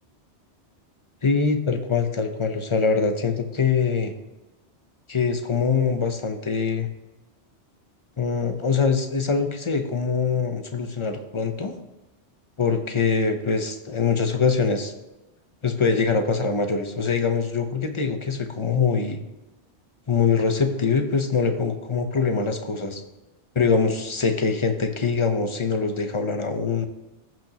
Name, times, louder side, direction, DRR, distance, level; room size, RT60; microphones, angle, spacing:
voice 1, 1.2-4.1 5.1-6.9 8.2-11.7 12.6-14.9 15.6-19.2 20.1-23.0 23.5-26.9, left 5 dB, 30° left, 6 dB, 0.8 m, -23 dB
14.5 x 6.1 x 2.9 m, 1.0 s
omnidirectional pair, 1.2 m